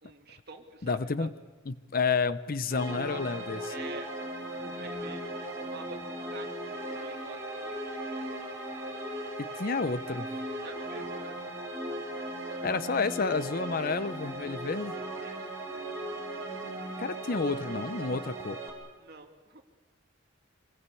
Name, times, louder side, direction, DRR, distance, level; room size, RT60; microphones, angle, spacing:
voice 1, 0.0-1.3 3.7-4.1 4.6-7.8 10.6-11.5 12.4-12.6 15.2-15.5 19.0-19.6, right 3 dB, 55° right, 4 dB, 2.6 m, -47 dB
voice 2, 0.8-1.3 1.7-3.7 9.4-10.3 12.6-14.9 17.0-18.6, left 4 dB, 45° left, 14 dB, 0.7 m, -30 dB
sound 1, 2.7-18.7, right 1 dB, 15° right, 5.4 m, -37 dB
26.5 x 20.0 x 8.4 m, 1.3 s
head